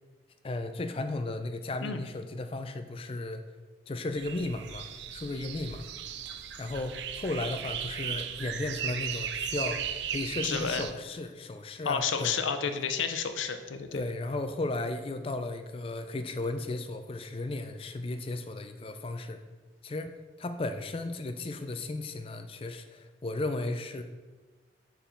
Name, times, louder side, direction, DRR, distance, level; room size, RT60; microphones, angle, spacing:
voice 1, 0.4-3.4 3.9-5.9 6.3-12.4 13.9-19.4 19.8-20.1 20.4-24.0, left 2 dB, 30° left, 8 dB, 0.3 m, -35 dB
sound 1, 4.2-10.9, right 8 dB, 65° right, 0.4 m, -36 dB
voice 2, 10.4-10.8 11.9-14.0, left 6 dB, 80° left, 8 dB, 0.5 m, -31 dB
5.2 x 4.7 x 4.3 m, 1.3 s
head